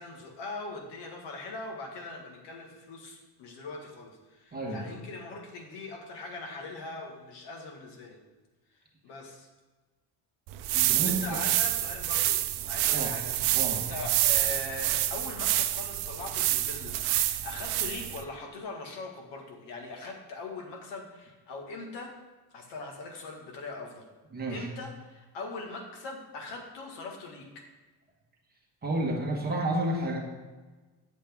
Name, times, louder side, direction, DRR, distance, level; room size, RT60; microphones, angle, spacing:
voice 1, 0.0-8.2 9.0-9.5 10.9-22.1 22.5-24.1 24.5-27.6, left 3 dB, 85° left, 2 dB, 1.7 m, -41 dB
voice 2, 4.5-4.8 10.7-11.4 12.9-13.2 13.5-13.8 24.3-24.7 28.8-30.2, right 1 dB, 25° right, -1 dB, 1.2 m, -31 dB
sound 1, 10.5-18.2, right 14 dB, 70° right, 0.6 m, -28 dB
8.0 x 7.1 x 3.5 m, 1.3 s
cardioid pair, 160°, 41 cm